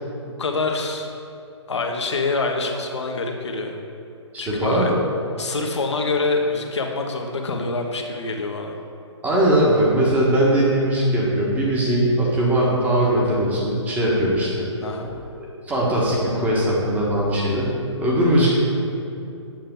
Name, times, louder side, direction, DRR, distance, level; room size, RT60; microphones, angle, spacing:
voice 1, 0.2-1.1 1.7-3.8 4.4-4.9 5.4-8.8 14.8-15.1, left 3 dB, 65° left, 2 dB, 1.2 m, -25 dB
voice 2, 4.3-5.0 9.2-14.7 15.7-17.7 18.0-18.5, right 1 dB, 10° right, -5 dB, 1.5 m, -20 dB
8.8 x 6.4 x 3.8 m, 2.6 s
figure-of-eight pair, 135°, 15 cm